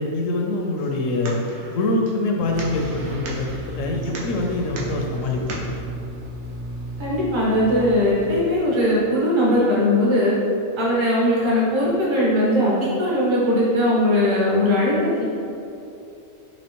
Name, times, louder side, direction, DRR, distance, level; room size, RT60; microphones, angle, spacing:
voice 1, 0.0-1.4 1.7-5.6, left 2 dB, 75° left, 1 dB, 0.9 m, -24 dB
sound 1, 0.8-5.8, right 1 dB, 80° right, 1.1 m, -37 dB
sound 2, 2.4-8.6, right 1 dB, 60° right, 0.8 m, -34 dB
voice 2, 7.0-10.3 10.8-15.2, left 1 dB, 25° right, -6 dB, 0.7 m, -19 dB
4.2 x 3.1 x 2.9 m, 2.7 s
omnidirectional pair, 1.4 m